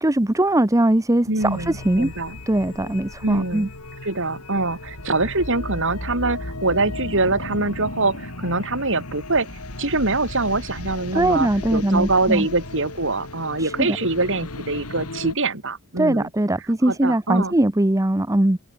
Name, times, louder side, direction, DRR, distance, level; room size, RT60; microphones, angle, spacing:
voice 1, 0.0-2.1 2.5-3.7 11.1-12.5 13.6-14.0 16.0-18.6, right 1 dB, 15° right, 0.8 m, -20 dB
voice 2, 1.3-2.4 3.2-3.7 4.0-9.5 9.8-16.3 16.9-17.5, right 2 dB, 60° right, 5.8 m, -24 dB
sound 1, 1.4-15.3, left 2 dB, 90° left, 3.9 m, -35 dB
head